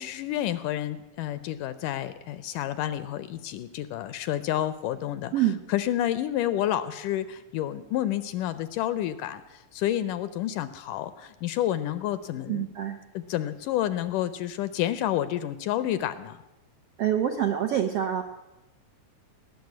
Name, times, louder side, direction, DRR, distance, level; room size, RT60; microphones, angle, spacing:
voice 1, 0.0-12.7 13.1-16.4, left 12 dB, 80° left, 13 dB, 2.0 m, -29 dB
voice 2, 12.5-13.0 17.0-18.2, right 10 dB, 75° right, 3 dB, 1.4 m, -26 dB
19.0 x 6.8 x 9.5 m, 0.99 s
omnidirectional pair, 4.0 m